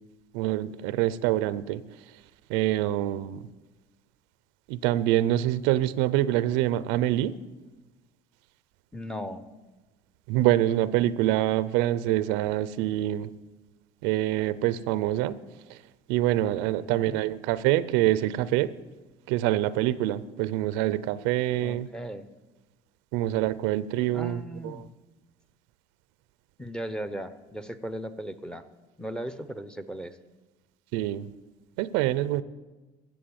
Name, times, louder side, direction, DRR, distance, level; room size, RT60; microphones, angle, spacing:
voice 1, 0.3-1.8 2.5-3.4 4.7-7.4 10.3-13.3 14.0-15.4 15.7-15.8 16.1-18.7 19.3-21.9 23.1-24.8 30.9-31.3 31.8-32.4, right 14 dB, 85° right, 17 dB, 0.6 m, -25 dB
voice 2, 8.9-9.4 16.4-16.6 16.8-17.2 21.6-22.3 24.1-24.8 26.6-28.6 29.0-30.2, equal, 5° left, 12 dB, 0.8 m, -37 dB
14.5 x 7.5 x 8.7 m, 1.2 s
supercardioid pair, 105°, 19 cm